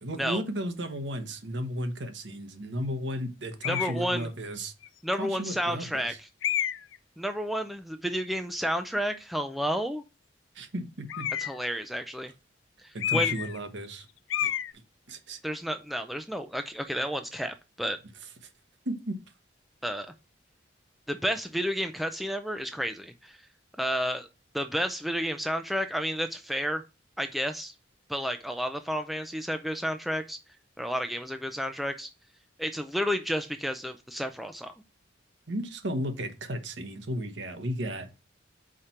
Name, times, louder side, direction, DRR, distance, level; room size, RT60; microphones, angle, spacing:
voice 1, 0.0-4.7 5.2-6.1 10.5-11.3 12.9-14.1 14.4-14.5 15.1-15.4 18.8-19.2 35.5-38.1, equal, 65° right, 6 dB, 1.1 m, -34 dB
sound 1, 3.6-4.0 4.8-4.9 6.4-7.0 11.1-11.7 13.0-13.6 13.8-14.0 14.3-14.7, left 10 dB, 75° left, 0.4 m, -29 dB
voice 2, 3.7-4.3 5.0-6.3 7.2-10.0 11.4-12.3 12.8-13.3 15.4-18.0 19.8-20.1 21.1-23.5 23.8-24.3 24.5-26.8 27.2-27.7 28.1-30.4 30.8-32.1 32.6-34.7, equal, ahead, 7 dB, 0.4 m, -31 dB
5.0 x 4.3 x 5.6 m, 0.29 s
head